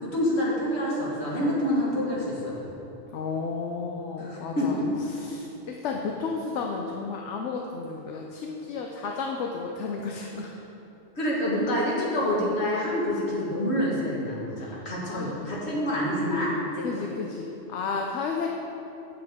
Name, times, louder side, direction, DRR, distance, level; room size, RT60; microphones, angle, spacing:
voice 1, 0.0-2.7 4.2-4.8 11.2-17.1, left 1 dB, 65° left, -5 dB, 1.8 m, -27 dB
voice 2, 3.1-4.8 5.1-10.5 14.6-15.4 16.8-18.5, left 4 dB, 80° left, 1 dB, 0.9 m, -33 dB
7.9 x 7.6 x 3.6 m, 3.0 s
omnidirectional pair, 1.2 m